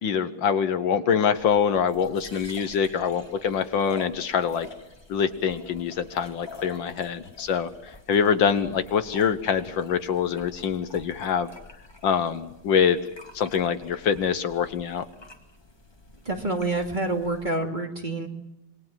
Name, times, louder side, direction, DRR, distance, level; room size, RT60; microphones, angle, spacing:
voice 1, 0.0-4.7 5.1-11.5 12.0-13.0 13.3-15.1, left 7 dB, 70° left, 12 dB, 1.8 m, -25 dB
sound 1, 1.3-17.5, left 2 dB, 15° left, 2.1 m, -47 dB
voice 2, 16.2-18.3, right 2 dB, 25° right, 3 dB, 2.7 m, -27 dB
27.0 x 22.5 x 7.5 m, 0.85 s
omnidirectional pair, 2.2 m